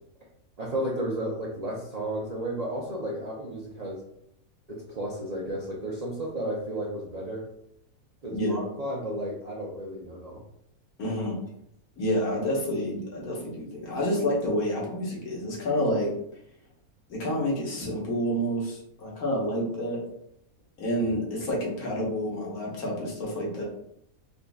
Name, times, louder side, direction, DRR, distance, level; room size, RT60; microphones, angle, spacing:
voice 1, 0.6-4.0 4.7-7.5 8.2-10.4 21.0-21.1, right 1 dB, 85° right, -4 dB, 0.3 m, -33 dB
voice 2, 11.0-11.4 12.0-16.1 17.1-20.0 20.8-23.6, equal, 75° left, -3 dB, 1.6 m, -28 dB
5.0 x 2.5 x 2.3 m, 0.74 s
omnidirectional pair, 1.6 m